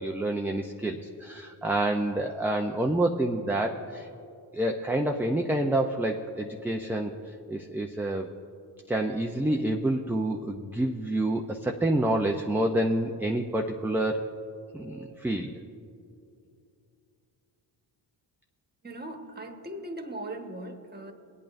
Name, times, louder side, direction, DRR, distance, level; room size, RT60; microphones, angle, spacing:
voice 1, 0.0-4.1 4.5-7.1 7.5-8.3 8.9-14.3 14.7-15.6, right 1 dB, 5° right, 2 dB, 0.4 m, -28 dB
voice 2, 18.8-21.1, right 1 dB, 20° right, 4 dB, 1.2 m, -39 dB
23.0 x 8.6 x 2.5 m, 2.6 s
cardioid pair, 70°, 48 cm